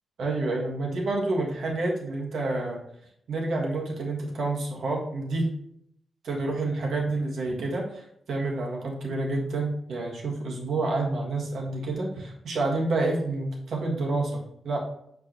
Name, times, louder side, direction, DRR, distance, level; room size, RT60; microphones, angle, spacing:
voice 1, 0.2-2.8 3.3-5.5 6.2-14.8, right 2 dB, 70° right, -1 dB, 1.7 m, -28 dB
7.3 x 4.8 x 3.1 m, 0.73 s
wide cardioid pair, 160°, 0 cm